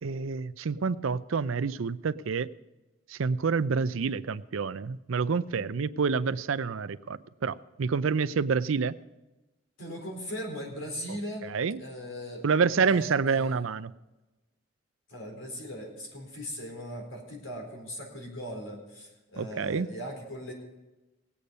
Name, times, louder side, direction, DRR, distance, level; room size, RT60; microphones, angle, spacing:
voice 1, 0.0-2.5 3.1-8.9 11.5-11.8 12.4-13.9 19.4-19.9, right 5 dB, 85° right, 15 dB, 0.5 m, -28 dB
voice 2, 9.8-11.5 11.8-12.4 12.8-13.6 15.1-20.5, equal, 85° left, 1 dB, 4.3 m, -39 dB
18.5 x 8.5 x 5.3 m, 1.1 s
head